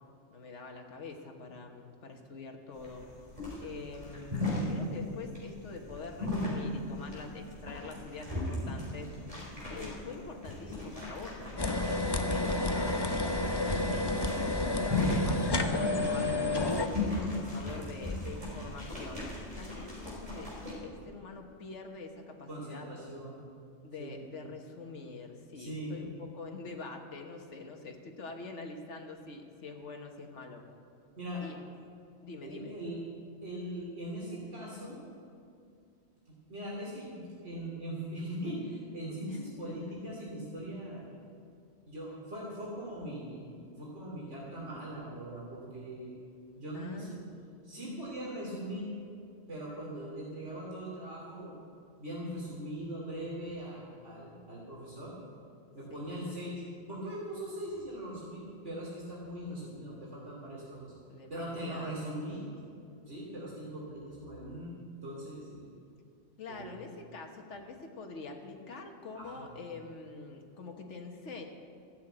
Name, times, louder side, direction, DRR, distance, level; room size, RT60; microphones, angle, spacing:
voice 1, 0.3-3.0 3.6-9.1 9.7-13.8 14.4-19.3 19.6-20.5 20.8-22.9 23.8-30.6 31.4-31.6 32.2-32.7 39.3-39.4 39.6-39.7 46.7-47.2 55.9-56.1 61.1-62.1 66.4-71.4, left 3 dB, 80° left, 3 dB, 1.6 m, -45 dB
sound 1, 2.8-20.7, left 2 dB, 30° right, 3.9 m, -37 dB
sound 2, 11.6-16.9, left 2 dB, 25° left, 0.6 m, -30 dB
voice 2, 22.5-23.5 24.0-24.3 25.6-26.0 31.2-31.4 32.4-33.0 33.4-35.0 36.3-41.0 41.9-46.1 46.5-47.2 47.6-48.9 49.5-51.6 52.0-55.1 55.7-56.6 56.9-60.9 61.3-62.5 63.1-64.7 65.0-65.7 66.5-67.0 69.1-69.6, right 1 dB, 80° right, -5 dB, 3.1 m, -40 dB
13.5 x 7.8 x 8.9 m, 2.4 s
omnidirectional pair, 1.2 m